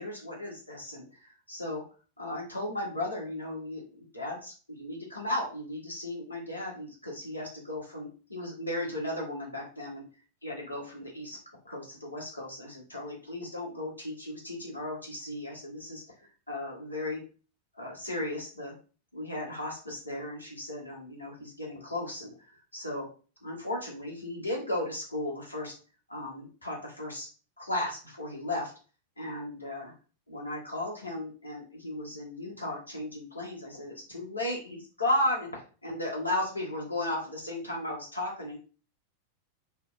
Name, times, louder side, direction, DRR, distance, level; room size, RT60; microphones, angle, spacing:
voice 1, 0.0-1.8 2.2-10.0 10.4-11.4 11.6-17.2 17.7-18.7 19.1-23.1 23.4-25.7 26.1-27.3 27.6-28.7 29.2-29.9 30.3-38.6, left 1 dB, 80° left, -2 dB, 1.0 m, -35 dB
3.0 x 2.6 x 2.3 m, 0.36 s
figure-of-eight pair, 90°, 0 cm